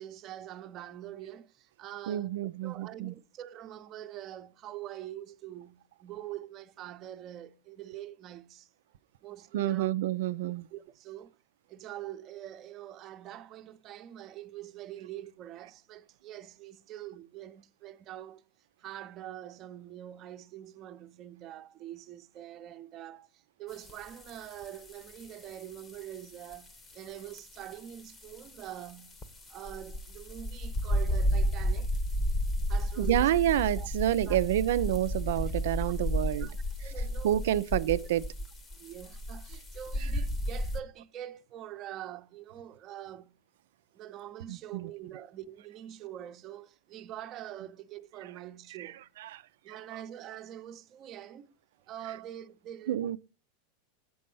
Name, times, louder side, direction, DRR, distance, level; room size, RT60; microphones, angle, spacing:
voice 1, 0.0-2.3 2.6-8.7 9.2-9.9 10.7-11.3 11.7-18.4 18.8-29.2 29.5-32.0 32.7-33.3 33.8-33.9 34.3-34.4 36.4-36.5 36.8-37.6 38.7-43.4 43.9-49.0 49.6-51.5 51.9-53.2, right 12 dB, 40° right, 0.7 m, -44 dB
voice 2, 2.1-3.1 9.5-10.7 33.0-36.5 37.2-38.2 44.5-44.9 48.8-48.9 49.2-49.4 52.9-53.2, right 12 dB, 75° right, 0.4 m, -28 dB
sound 1, 23.7-40.8, equal, 25° left, 1.0 m, -33 dB
7.7 x 4.1 x 5.4 m
hypercardioid pair, 115°, 0 cm